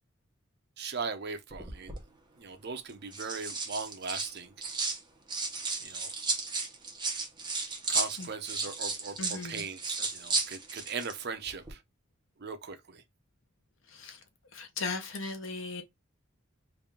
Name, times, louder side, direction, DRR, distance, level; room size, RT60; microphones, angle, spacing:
voice 1, 0.8-2.0 2.4-4.5 5.8-6.1 7.9-11.8 12.4-13.0, right 5 dB, 55° right, 0.7 m, -39 dB
sound 1, 1.5-2.0 2.9-5.0 5.3-11.2 11.4-11.7, right 3 dB, 25° right, 0.9 m, -34 dB
voice 2, 9.2-9.7 13.9-14.2 14.5-15.8, left 4 dB, 75° left, 0.9 m, -37 dB
3.4 x 2.5 x 3.5 m
head